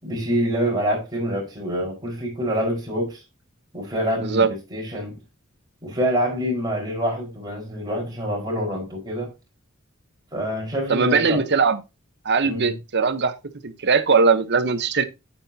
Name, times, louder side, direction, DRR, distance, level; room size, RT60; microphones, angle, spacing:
voice 1, 0.0-3.2 3.7-5.2 5.8-9.3 10.3-11.4 12.4-12.8, equal, 20° right, 4.9 m, -26 dB
voice 2, 10.9-11.8 12.2-13.3 13.6-15.0, right 5 dB, 55° right, 1.0 m, -20 dB
9.9 x 8.8 x 2.8 m
head